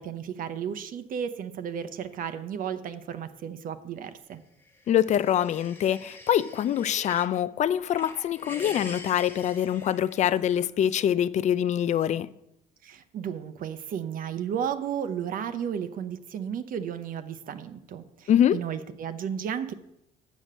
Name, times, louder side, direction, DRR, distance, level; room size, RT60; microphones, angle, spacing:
voice 1, 0.0-4.4 12.8-19.7, right 8 dB, 55° right, 0.7 m, -33 dB
sound 1, 4.7-7.4 7.8-10.6, left 2 dB, 10° left, 1.2 m, -45 dB
voice 2, 4.9-12.3 18.3-18.6, left 10 dB, 45° left, 0.4 m, -24 dB
6.7 x 6.2 x 7.5 m
cardioid pair, 110°, 17 cm